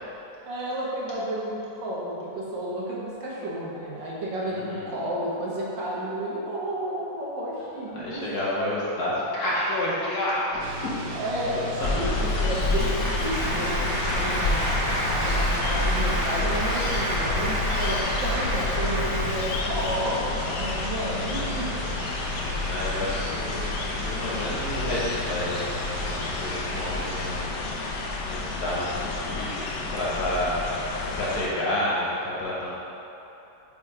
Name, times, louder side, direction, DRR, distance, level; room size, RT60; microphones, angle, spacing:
voice 1, 0.4-8.3 11.1-22.1 23.0-23.3, right 1 dB, 65° right, -5 dB, 1.6 m, -32 dB
voice 2, 4.5-4.9 7.9-11.1 11.5-12.0 21.2-21.8 22.7-27.6 28.2-30.6 31.0-32.7, left 1 dB, 55° left, -7 dB, 1.4 m, -30 dB
sound 1, 10.6-27.5, equal, 85° right, 0.7 m, -36 dB
sound 2, 11.8-31.5, left 3 dB, 80° left, 0.8 m, -29 dB
Applause, 12.3-19.8, equal, 40° right, 1.2 m, -30 dB
5.4 x 4.1 x 4.7 m, 3.0 s
omnidirectional pair, 2.2 m